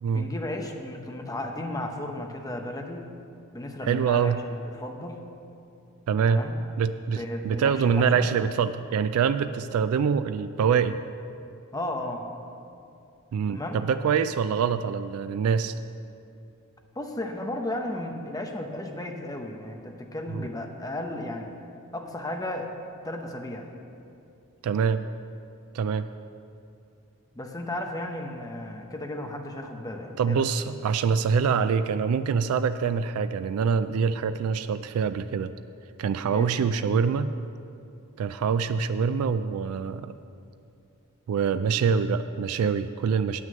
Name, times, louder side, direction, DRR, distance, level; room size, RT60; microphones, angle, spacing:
voice 1, 0.1-3.1 3.5-5.2 6.3-6.6 7.1-8.3 11.7-12.3 13.5-13.8 17.0-21.6 21.9-22.7 23.0-23.7 27.3-30.4 36.3-36.5, left 1 dB, 15° left, 3 dB, 0.8 m, -34 dB
voice 2, 3.9-4.4 6.1-6.4 6.8-11.0 13.3-15.7 20.3-20.5 24.6-25.0 25.7-26.1 30.2-35.5 36.0-37.3 38.2-40.1 41.3-43.4, right 6 dB, 85° right, 12 dB, 0.3 m, -25 dB
9.1 x 6.3 x 7.7 m, 2.6 s
head